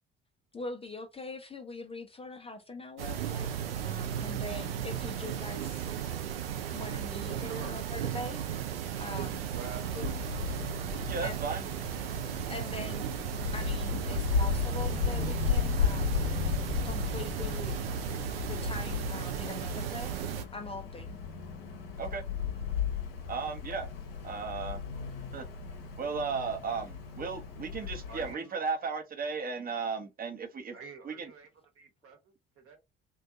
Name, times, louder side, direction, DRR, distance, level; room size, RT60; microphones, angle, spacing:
voice 1, 0.5-3.5 3.8-5.9 6.7-8.4 9.0-9.4 9.9-10.1 11.2-11.4 12.5-13.1 13.5-16.2 16.8-17.9 18.5-20.2 20.5-21.2, left 2 dB, 20° left, 0.5 m, -42 dB
sound 1, 3.0-20.4, right 9 dB, 80° right, 0.5 m, -35 dB
voice 2, 7.4-7.7 9.1-10.1 27.7-28.5 30.7-31.5 31.7-32.8, right 5 dB, 50° right, 1.1 m, -47 dB
Wind, 9.7-28.3, left 6 dB, 75° left, 0.7 m, -35 dB
voice 3, 11.1-11.6 22.0-22.2 23.3-23.9 24.2-24.8 25.3-25.4 26.0-30.8 31.0-31.3, right 5 dB, 30° right, 0.8 m, -35 dB
2.6 x 2.3 x 2.4 m
figure-of-eight pair, 50°, 29 cm